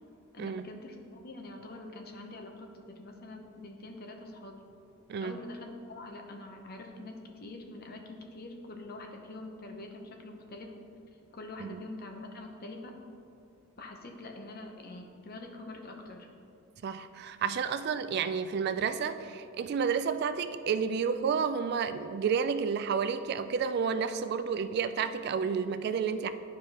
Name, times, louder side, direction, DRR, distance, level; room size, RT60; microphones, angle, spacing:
voice 1, 0.3-4.6 5.2-10.7 11.3-12.9 13.8-16.3, left 2 dB, 50° left, 3 dB, 0.8 m, -45 dB
voice 2, 16.8-26.3, right 6 dB, 50° right, 11 dB, 0.3 m, -31 dB
11.5 x 4.8 x 2.9 m, 2.5 s
head